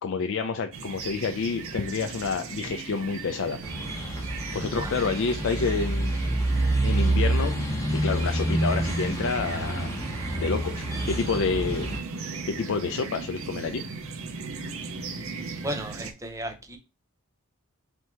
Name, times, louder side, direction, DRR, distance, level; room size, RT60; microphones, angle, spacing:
voice 1, 0.0-3.6 4.5-6.2 6.8-7.5 7.9-9.9 10.4-11.9 12.2-13.8, left 4 dB, 60° left, 6 dB, 0.4 m, -29 dB
sound 1, 0.7-16.1, right 4 dB, 65° right, 0.7 m, -38 dB
sound 2, 3.6-12.0, right 1 dB, 15° left, 1.1 m, -27 dB
voice 2, 15.6-16.8, right 1 dB, 15° right, 4 dB, 0.7 m, -34 dB
3.4 x 2.8 x 4.3 m, 0.29 s
head